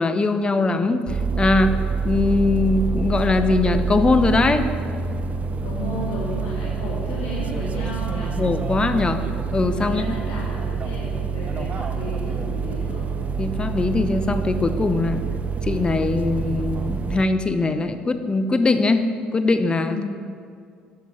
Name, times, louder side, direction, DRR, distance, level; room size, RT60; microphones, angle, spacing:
voice 1, 0.0-1.8 2.0-4.7 8.4-9.2 9.5-10.2 13.4-15.2 15.6-20.0, left 3 dB, 25° left, 9 dB, 0.8 m, -21 dB
sound 1, 1.1-17.2, right 5 dB, 40° right, 0.6 m, -26 dB
voice 2, 5.6-8.4 9.8-13.1 19.9-20.1, left 2 dB, 70° left, -6 dB, 2.1 m, -33 dB
11.5 x 6.3 x 5.5 m, 2.2 s
supercardioid pair, 70°, 4 cm